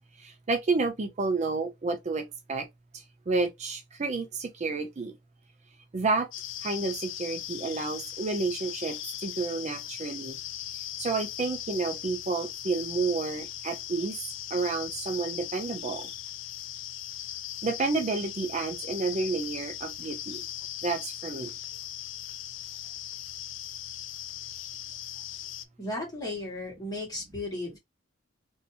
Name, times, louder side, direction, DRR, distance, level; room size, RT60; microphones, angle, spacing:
voice 1, 0.2-2.7 3.3-5.1 5.9-6.3 6.6-10.4 11.0-14.1 14.5-16.1 17.6-20.4 20.8-21.5, right 3 dB, 35° right, 0.4 m, -30 dB
sound 1, 6.3-25.7, left 12 dB, 75° left, 0.4 m, -39 dB
voice 2, 25.8-27.8, left 2 dB, 20° left, 1.8 m, -35 dB
3.3 x 2.7 x 2.7 m
head